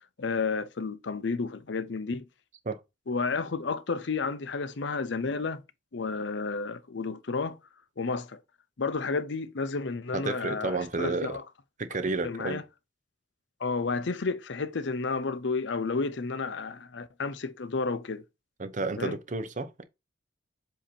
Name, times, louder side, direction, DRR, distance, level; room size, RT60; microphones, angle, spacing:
voice 1, 0.2-2.2 3.1-5.6 5.9-7.6 8.0-8.4 8.8-11.4 12.2-12.6 13.6-18.2 19.0-19.2, left 4 dB, 65° left, 0.6 m, -31 dB
voice 2, 10.1-11.4 11.8-12.6 18.6-19.8, right 3 dB, 40° right, 0.7 m, -31 dB
7.6 x 2.9 x 4.3 m
head